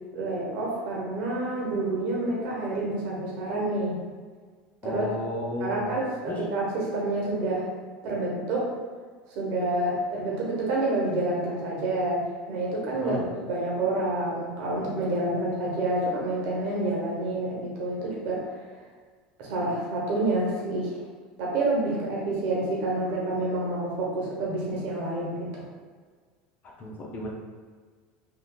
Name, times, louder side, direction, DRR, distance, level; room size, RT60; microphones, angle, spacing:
voice 1, 0.1-4.0 4.8-5.1 5.6-7.7 8.0-8.7 9.3-18.6 19.4-20.9 21.4-25.5, right 2 dB, 65° right, -3 dB, 1.0 m, -28 dB
voice 2, 4.8-5.9 6.3-6.4 12.9-13.2 26.8-27.3, left 1 dB, 35° left, -1 dB, 0.6 m, -33 dB
3.4 x 2.5 x 2.3 m, 1.5 s
supercardioid pair, 105°, 5 cm